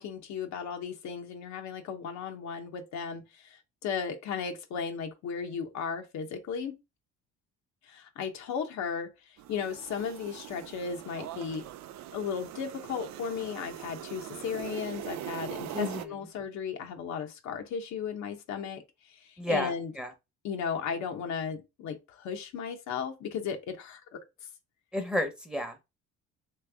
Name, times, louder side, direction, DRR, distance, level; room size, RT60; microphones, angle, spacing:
voice 1, 0.0-6.7 7.8-11.6 12.1-18.8 19.1-19.9 20.4-24.2, left 6 dB, 70° left, 1.0 m, -35 dB
sound 1, 9.4-16.0, right 12 dB, 65° right, 0.5 m, -42 dB
voice 2, 15.7-16.2 19.4-20.1 24.9-25.9, left 1 dB, 5° right, 1.0 m, -32 dB
3.3 x 3.3 x 3.5 m
supercardioid pair, 85°, 30 cm